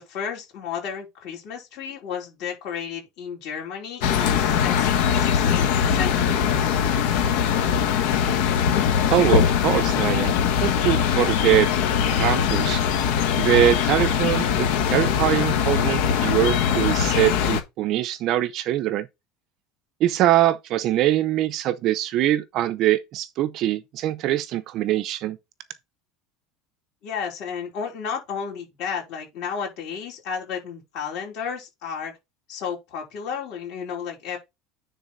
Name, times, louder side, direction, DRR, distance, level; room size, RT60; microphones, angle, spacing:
voice 1, 0.0-6.4 27.0-32.1 32.5-34.4, left 7 dB, 45° left, 4.5 m, -33 dB
sound 1, 4.0-17.6, left 8 dB, 60° left, 1.3 m, -21 dB
voice 2, 9.1-10.3 10.6-11.7 12.1-12.8 13.4-19.1 20.0-25.4, right 13 dB, 40° right, 0.6 m, -23 dB
9.9 x 3.9 x 4.0 m
cardioid pair, 175°, 0 cm